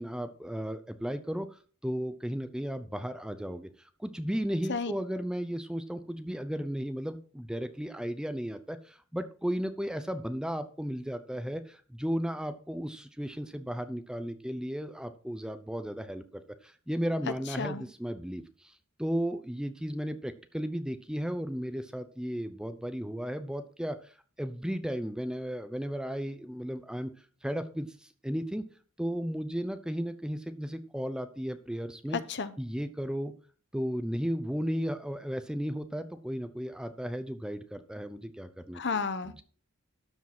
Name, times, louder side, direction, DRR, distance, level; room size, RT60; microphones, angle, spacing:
voice 1, 0.0-3.7 4.0-16.2 16.6-18.7 19.0-24.1 24.4-27.1 27.4-27.9 28.2-28.7 29.0-32.2 32.6-33.3 33.7-38.8 39.3-39.4, equal, 5° right, 10 dB, 0.7 m, -34 dB
voice 2, 32.1-32.5 38.7-39.3, left 5 dB, 55° left, 12 dB, 1.0 m, -32 dB
12.5 x 5.1 x 6.0 m, 0.41 s
head